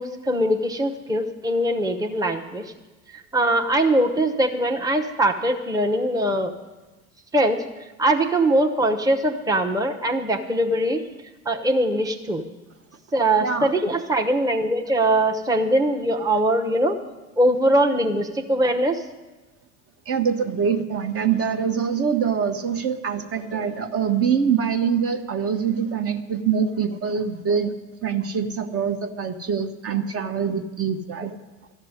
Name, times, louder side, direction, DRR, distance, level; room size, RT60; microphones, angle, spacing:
voice 1, 0.0-2.7 3.1-6.5 7.3-7.6 8.0-11.0 11.4-12.5 13.1-17.0 17.4-19.0, right 1 dB, 10° right, 3 dB, 1.0 m, -22 dB
voice 2, 20.1-27.7 28.0-31.3, right 7 dB, 35° right, 7 dB, 1.2 m, -24 dB
13.0 x 6.6 x 9.7 m, 1.1 s
hypercardioid pair, 80°, 40 cm